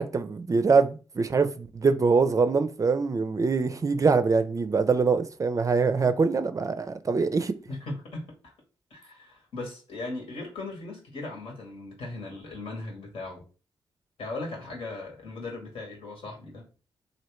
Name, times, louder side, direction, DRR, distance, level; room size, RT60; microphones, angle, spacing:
voice 1, 0.0-7.5, right 4 dB, 35° right, 0.4 m, -24 dB
voice 2, 7.7-8.5 8.9-13.4 14.2-16.6, left 2 dB, 70° left, 1.4 m, -38 dB
3.0 x 2.6 x 3.0 m
hypercardioid pair, 40°, 10 cm